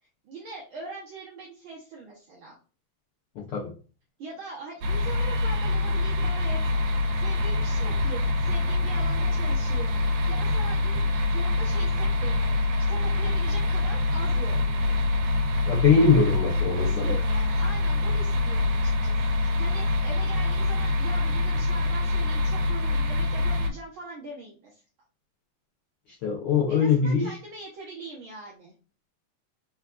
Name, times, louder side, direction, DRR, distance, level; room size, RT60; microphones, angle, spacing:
voice 1, 0.2-2.6 4.2-12.6 12.9-15.0 16.7-24.8 26.7-28.7, right 3 dB, 65° right, -4 dB, 1.3 m, -41 dB
voice 2, 3.4-3.7 15.7-17.1 26.2-27.3, left 5 dB, 70° left, -3 dB, 1.3 m, -22 dB
sound 1, 4.8-23.7, left 2 dB, 90° right, 2.2 m, -25 dB
4.5 x 3.5 x 2.4 m, 0.37 s
omnidirectional pair, 3.4 m